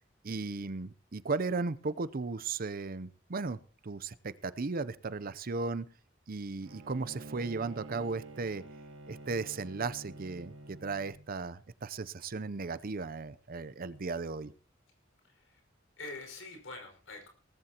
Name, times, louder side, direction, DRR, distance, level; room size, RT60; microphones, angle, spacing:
voice 1, 0.2-5.9 6.3-8.6 9.1-14.5, right 4 dB, 45° right, 16 dB, 0.7 m, -36 dB
Bowed string instrument, 6.6-11.3, right 2 dB, 70° right, 1.6 m, -48 dB
voice 2, 15.2-15.6 16.0-17.3, left 2 dB, 70° left, 4 dB, 5.5 m, -45 dB
18.5 x 14.5 x 2.9 m, 0.38 s
head